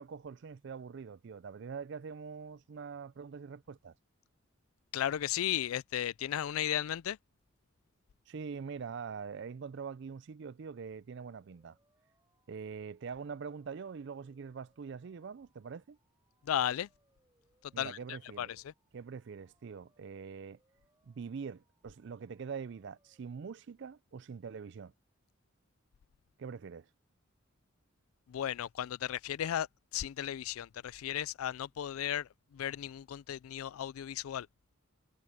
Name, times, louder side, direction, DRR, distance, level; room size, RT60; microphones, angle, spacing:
voice 1, 0.0-3.9 8.3-11.8 12.5-16.0 17.7-18.5 18.9-20.6 21.0-24.9 26.4-26.9, right 5 dB, 55° right, 0.4 m, -44 dB
voice 2, 4.9-7.2 16.4-16.9 17.8-18.7 28.3-29.7 29.9-34.5, left 10 dB, 85° left, 0.4 m, -35 dB
sound 1, 11.4-23.4, right 2 dB, 15° right, 5.8 m, -77 dB
head